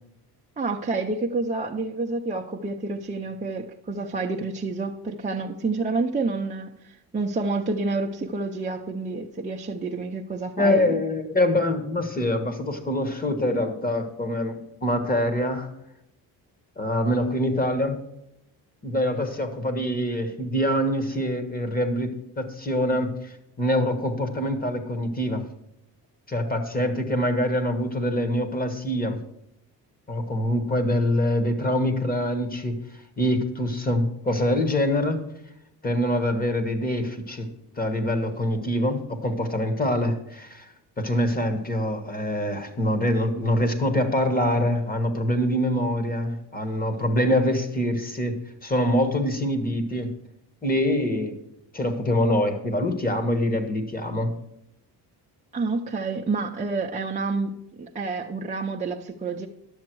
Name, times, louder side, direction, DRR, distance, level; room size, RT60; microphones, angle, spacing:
voice 1, 0.6-11.0 55.5-57.5 57.8-59.5, right 3 dB, 20° right, 0 dB, 0.6 m, -29 dB
voice 2, 10.6-15.7 16.8-18.0 18.8-25.5 26.3-29.2 30.1-32.8 33.2-35.2 35.8-37.5 37.8-50.1 50.6-51.4 51.7-54.3, left 1 dB, 20° left, 7 dB, 1.4 m, -25 dB
10.5 x 7.2 x 4.6 m, 0.84 s
cardioid pair, 125°, 41 cm